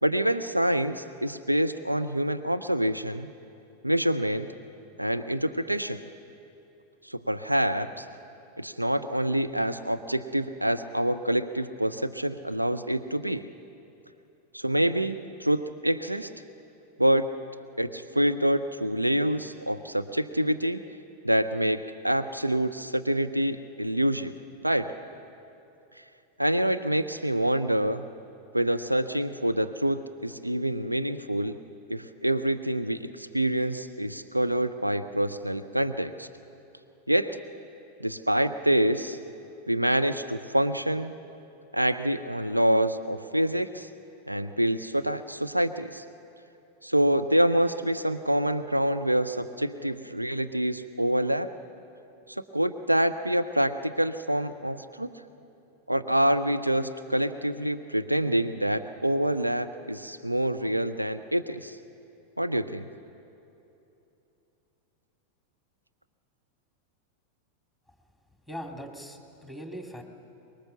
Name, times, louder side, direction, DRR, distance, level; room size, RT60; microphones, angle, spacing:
voice 1, 0.0-3.3 3.8-4.5 5.0-6.0 7.0-8.1 8.6-13.5 14.5-16.3 17.0-17.3 17.8-20.8 21.2-24.3 24.6-24.9 26.4-28.0 28.5-31.6 31.9-36.3 37.1-37.4 38.0-39.2 39.7-41.1 41.7-43.9 44.3-46.0 46.8-51.5 52.3-55.1 55.9-61.8 62.4-62.8, right 1 dB, 85° right, 10 dB, 0.6 m, -26 dB
voice 2, 68.5-70.0, equal, 5° right, 3 dB, 2.6 m, -40 dB
24.0 x 21.5 x 7.0 m, 2.9 s
figure-of-eight pair, 90°, 0 cm